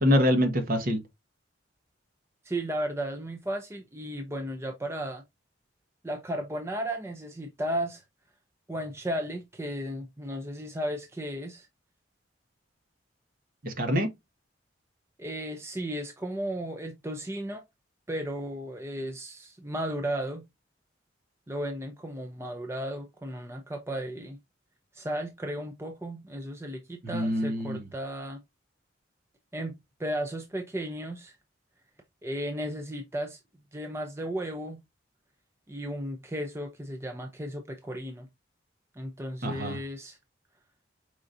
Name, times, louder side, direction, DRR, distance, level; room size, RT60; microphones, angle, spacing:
voice 1, 0.0-1.0 13.6-14.1 27.0-27.8 39.4-39.8, equal, 45° right, 1.1 m, -25 dB
voice 2, 2.4-5.2 6.0-8.0 8.7-11.7 15.2-17.6 18.1-20.5 21.5-24.4 24.9-28.4 29.5-31.4 32.2-33.4 33.7-34.8 35.7-38.3 39.0-40.2, right 1 dB, 15° right, 0.5 m, -34 dB
4.9 x 3.9 x 2.5 m
head